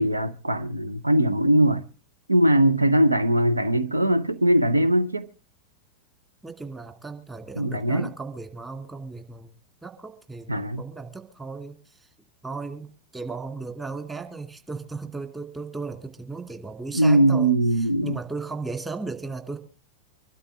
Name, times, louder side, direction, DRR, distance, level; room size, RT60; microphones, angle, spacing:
voice 1, 0.0-1.8 2.3-5.3 7.6-8.1 10.5-10.8 16.9-18.2, right 1 dB, 80° right, 0.8 m, -21 dB
voice 2, 6.4-9.5 9.8-12.0 12.4-17.5 18.0-19.6, right 4 dB, 10° right, 2.2 m, -36 dB
25.0 x 12.5 x 3.5 m
figure-of-eight pair, 90°, 0 cm